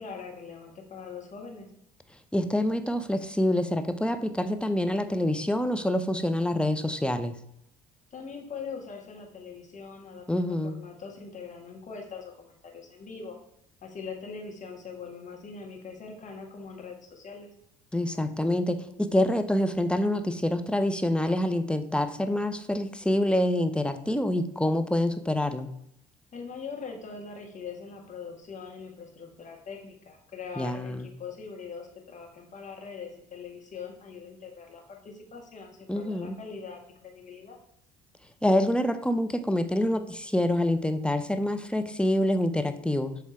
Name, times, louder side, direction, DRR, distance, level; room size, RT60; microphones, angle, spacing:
voice 1, 0.0-1.7 8.1-13.4 13.8-17.5 26.3-37.6, left 5 dB, 40° left, 1 dB, 1.7 m, -42 dB
voice 2, 2.3-7.3 10.3-10.8 17.9-25.7 30.6-31.1 35.9-36.4 38.4-43.2, left 1 dB, 5° left, 8 dB, 0.6 m, -26 dB
7.3 x 3.4 x 4.5 m, 0.76 s
hypercardioid pair, 60°, 19 cm